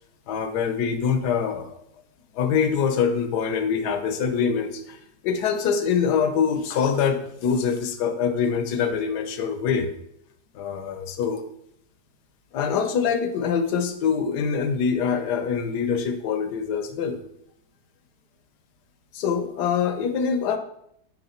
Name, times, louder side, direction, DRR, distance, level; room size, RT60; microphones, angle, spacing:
voice 1, 0.3-1.8 2.3-5.0 5.2-9.9 10.5-11.4 12.5-17.2 19.1-20.6, left 6 dB, 70° left, 8 dB, 1.2 m, -24 dB
6.6 x 4.7 x 4.3 m, 0.74 s
omnidirectional pair, 1.9 m